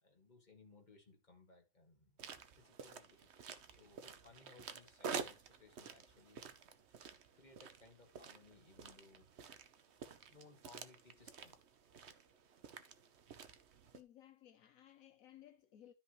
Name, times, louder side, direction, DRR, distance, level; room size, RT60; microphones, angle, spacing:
voice 1, 0.0-2.2 2.6-6.4 7.3-9.3 10.3-11.6, left 3 dB, 25° left, 2.0 m, -63 dB
sound 1, 2.2-14.0, right 6 dB, 55° right, 0.7 m, -50 dB
voice 2, 13.9-15.9, left 12 dB, 65° left, 0.8 m, -60 dB
13.0 x 5.4 x 3.1 m
omnidirectional pair, 2.1 m